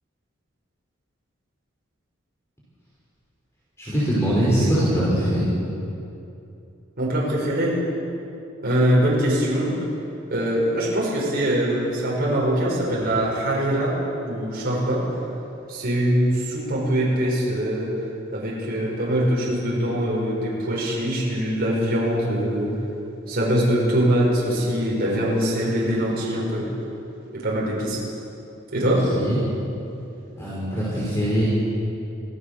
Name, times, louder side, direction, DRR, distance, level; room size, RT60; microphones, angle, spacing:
voice 1, 3.8-5.4 28.8-29.4 30.4-31.4, equal, 15° left, -8 dB, 5.3 m, -22 dB
voice 2, 7.0-7.8 8.6-9.7 10.3-13.9 14.2-15.0 15.7-17.9 18.3-22.7 23.3-26.6 27.3-28.0 28.7-29.0, right 1 dB, 50° right, -5 dB, 6.0 m, -23 dB
25.5 x 17.0 x 6.9 m, 2.8 s
head